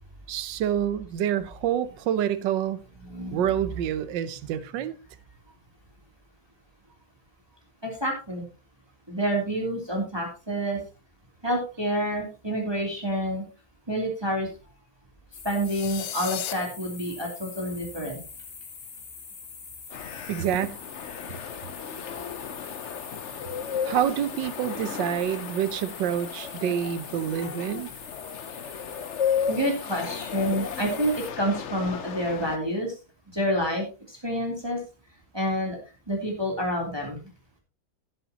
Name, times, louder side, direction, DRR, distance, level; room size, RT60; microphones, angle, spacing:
voice 1, 0.3-2.8 3.3-4.9 20.3-20.8 23.8-27.9, right 10 dB, 70° right, 1.4 m, -27 dB
voice 2, 3.0-3.7 7.8-8.4 9.1-10.8 11.4-13.4 13.9-14.5 15.4-18.2 22.1-22.2 23.3-23.4 23.7-23.8 29.5-32.9 33.3-34.8 35.3-35.8 36.1-37.2, equal, 10° right, 2.9 m, -28 dB
sound 1, 15.3-31.3, left 5 dB, 35° left, 1.7 m, -44 dB
sound 2, 15.7-16.5, left 12 dB, 80° left, 1.6 m, -34 dB
sound 3, 19.9-32.6, left 7 dB, 60° left, 0.7 m, -34 dB
16.5 x 8.1 x 2.9 m
omnidirectional pair, 2.1 m